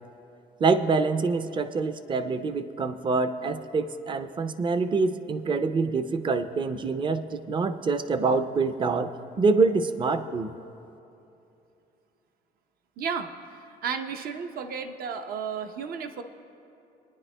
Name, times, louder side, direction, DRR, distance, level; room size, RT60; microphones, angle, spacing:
voice 1, 0.6-9.1 9.4-10.5, right 4 dB, 30° right, 11 dB, 0.5 m, -25 dB
voice 2, 13.0-13.3 13.8-16.2, right 6 dB, 60° right, 7 dB, 0.7 m, -33 dB
27.0 x 9.8 x 2.2 m, 2.8 s
cardioid pair, 110°, 17 cm